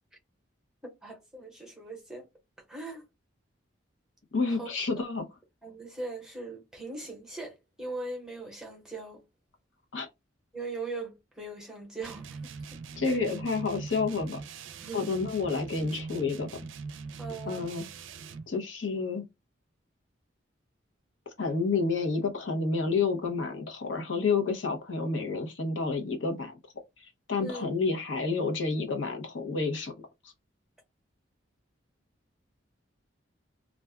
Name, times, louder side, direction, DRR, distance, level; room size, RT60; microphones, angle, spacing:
voice 1, 0.8-2.3 2.7-3.0 4.5-4.7 5.6-9.2 10.5-12.5 13.0-13.2 14.8-15.2 17.2-17.6 27.4-27.6, right 2 dB, 5° right, 0.9 m, -40 dB
voice 2, 4.3-5.2 9.9-10.1 13.0-14.4 14.9-16.5 17.5-17.9 18.5-19.2 21.4-26.5 27.0-29.9, left 4 dB, 80° left, 0.8 m, -29 dB
sound 1, 12.0-18.5, right 4 dB, 80° right, 0.4 m, -42 dB
2.4 x 2.2 x 3.4 m
head